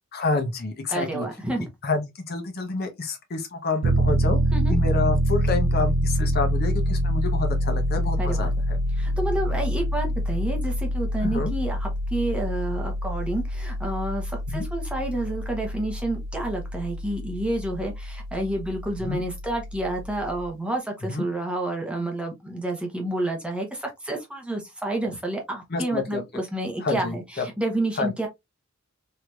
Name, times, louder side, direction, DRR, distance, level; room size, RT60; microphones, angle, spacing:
voice 1, 0.1-1.3 1.6-4.4 4.7-8.8 11.2-11.5 14.5-14.7 19.0-19.2 21.1-21.3 25.7-26.2 26.8-27.4 28.0-28.1, left 3 dB, 50° left, 0.7 m, -28 dB
voice 2, 0.9-1.7 4.5-4.7 8.2-8.5 8.9-28.3, right 1 dB, 5° right, 0.7 m, -29 dB
Piano, 3.8-20.5, equal, 50° right, 0.4 m, -26 dB
3.2 x 2.8 x 2.2 m
head